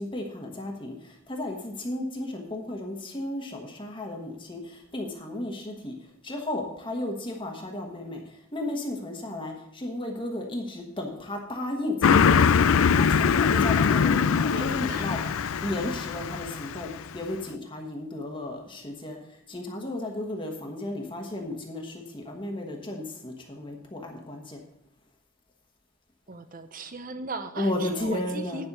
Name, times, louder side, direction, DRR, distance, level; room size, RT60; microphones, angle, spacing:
voice 1, 0.0-15.3 15.6-24.6 27.5-28.7, left 1 dB, 25° left, 1 dB, 1.2 m, -34 dB
Car passing by, 12.0-17.0, left 6 dB, 85° left, 0.4 m, -22 dB
voice 2, 14.5-15.3 26.3-28.7, right 3 dB, 40° right, 10 dB, 0.6 m, -38 dB
10.0 x 5.5 x 6.6 m, 0.79 s
head